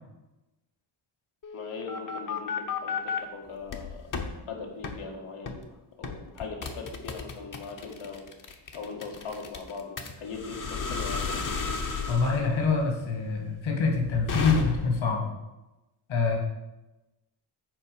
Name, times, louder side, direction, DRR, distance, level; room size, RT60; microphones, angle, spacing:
sound 1, 1.4-3.2 3.7-4.3 4.8-5.0 5.5-5.7 6.0-15.1, left 5 dB, 40° left, 1.1 m, -33 dB
voice 1, 1.5-4.0 4.5-5.6 6.0-8.3 8.7-11.4, left 5 dB, 80° left, 1 dB, 1.9 m, -39 dB
voice 2, 12.1-15.3 16.1-16.4, left 4 dB, 65° left, 0 dB, 2.3 m, -25 dB
7.3 x 4.7 x 6.9 m, 1.0 s
cardioid pair, 115°, 49 cm